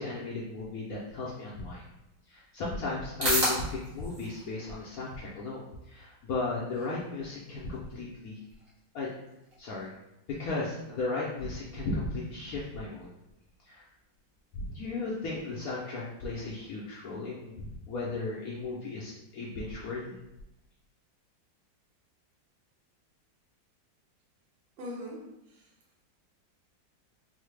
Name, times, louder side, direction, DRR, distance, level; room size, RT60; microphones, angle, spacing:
voice 1, 0.0-1.8 2.3-8.4 8.9-9.1 9.6-9.9 10.3-13.1 13.6-13.8 14.5-17.6 17.9-20.2, left 3 dB, 70° left, -5 dB, 0.8 m, -35 dB
sound 1, 1.7-18.7, right 1 dB, 40° right, 1.3 m, -40 dB
voice 2, 24.8-25.8, left 1 dB, 80° right, -3 dB, 1.5 m, -42 dB
3.9 x 2.0 x 3.2 m, 0.89 s
omnidirectional pair, 2.0 m